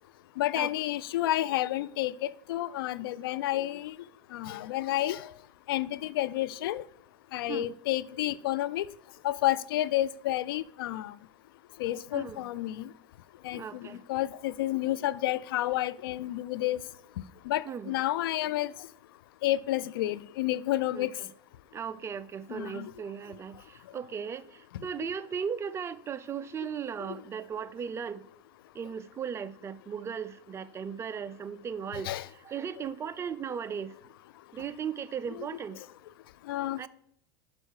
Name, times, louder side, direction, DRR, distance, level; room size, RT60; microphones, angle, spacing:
voice 1, 0.4-3.9 4.3-5.3 5.7-6.8 7.3-8.9 9.2-11.1 11.8-12.9 13.4-16.8 17.5-18.7 19.4-21.1 22.5-22.9 32.0-32.3 35.3-35.5 36.5-36.9, left 15 dB, 85° left, 0.4 m, -30 dB
voice 2, 13.5-14.0 17.7-17.9 20.9-21.1 21.7-28.2 28.8-32.1 32.5-33.9 34.5-35.8 36.8-36.9, right 7 dB, 25° right, 0.4 m, -37 dB
6.2 x 5.4 x 6.3 m
supercardioid pair, 120°, 12 cm